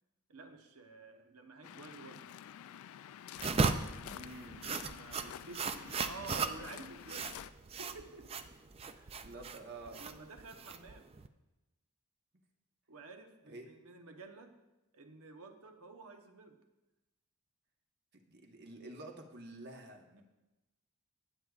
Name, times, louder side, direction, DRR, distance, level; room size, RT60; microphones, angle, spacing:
voice 1, 0.3-2.4 4.8-7.4 7.8-8.5 9.0-9.3 9.9-11.1 12.9-14.6 14.9-16.6, right 3 dB, 80° right, 5 dB, 1.0 m, -51 dB
Waves surf, 1.6-7.5, left 10 dB, 70° left, 0.3 m, -49 dB
sound 1, 3.4-11.3, right 4 dB, 25° right, 0.4 m, -36 dB
voice 2, 4.0-4.7 9.2-10.0 13.5-13.7 18.1-20.2, right 2 dB, 50° right, 2 dB, 1.1 m, -49 dB
17.5 x 8.0 x 2.4 m, 1.0 s
head